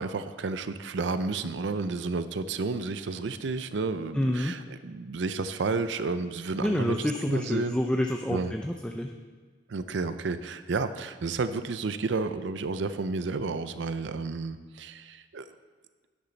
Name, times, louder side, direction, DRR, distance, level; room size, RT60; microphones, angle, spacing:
voice 1, 0.0-7.8 8.3-8.5 9.7-15.4, right 3 dB, 75° right, 11 dB, 0.5 m, -31 dB
voice 2, 4.1-4.5 6.6-9.1, left 1 dB, 5° left, 2 dB, 0.4 m, -28 dB
11.5 x 10.0 x 4.0 m, 1.5 s
head